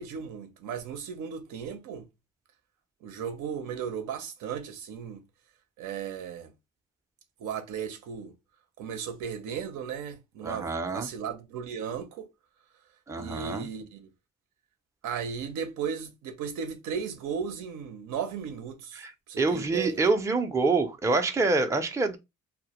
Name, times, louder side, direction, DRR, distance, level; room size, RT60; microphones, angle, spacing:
voice 1, 0.0-2.1 3.0-5.2 5.8-6.5 7.4-8.3 8.8-12.3 13.2-14.1 15.0-20.0, right 7 dB, 85° right, 0.6 m, -36 dB
voice 2, 10.4-11.1 13.1-13.7 19.0-19.1 19.4-22.2, right 3 dB, 10° right, 0.4 m, -26 dB
2.1 x 2.1 x 2.8 m
cardioid pair, 90°, 30 cm